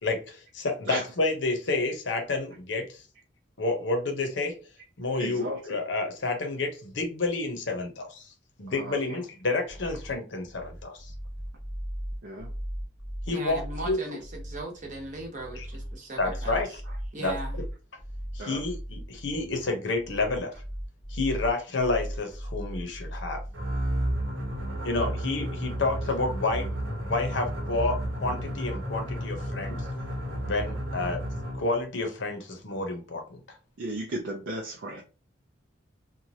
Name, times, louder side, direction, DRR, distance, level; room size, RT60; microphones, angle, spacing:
voice 1, 0.0-3.0 3.6-4.5 5.0-8.3 8.6-11.1 13.3-14.0 15.6-15.7 16.2-16.7 17.2-17.3 18.3-20.5 21.1-23.4 24.8-26.7 27.0-29.8 30.4-31.2 31.5-33.4, left 3 dB, 65° left, 4 dB, 0.7 m, -29 dB
voice 2, 5.2-5.6 8.7-9.2 12.2-12.5 18.4-18.6 33.8-35.0, right 1 dB, 65° right, -1 dB, 0.5 m, -35 dB
sound 1, 9.7-24.7, equal, 15° left, 0.6 m, -38 dB
voice 3, 13.3-16.8 17.1-17.6, right 2 dB, 40° right, 0 dB, 0.8 m, -38 dB
sound 2, 23.5-31.8, equal, 85° right, 1.0 m, -32 dB
3.0 x 2.2 x 2.7 m, 0.33 s
head